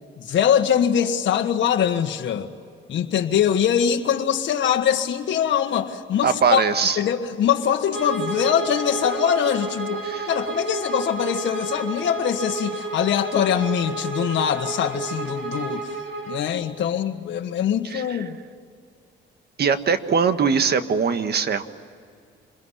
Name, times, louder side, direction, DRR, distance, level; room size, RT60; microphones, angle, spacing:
voice 1, 0.2-2.5 2.9-6.6 7.0-15.9 16.3-18.4, left 9 dB, 65° left, 3 dB, 1.6 m, -23 dB
voice 2, 6.2-7.0 10.0-10.3 17.8-18.2 19.6-21.6, right 6 dB, 55° right, 9 dB, 1.6 m, -21 dB
Bowed string instrument, 7.9-16.4, right 3 dB, 80° right, 5.2 m, -31 dB
27.0 x 21.5 x 10.0 m, 2.3 s
cardioid pair, 90°, 20 cm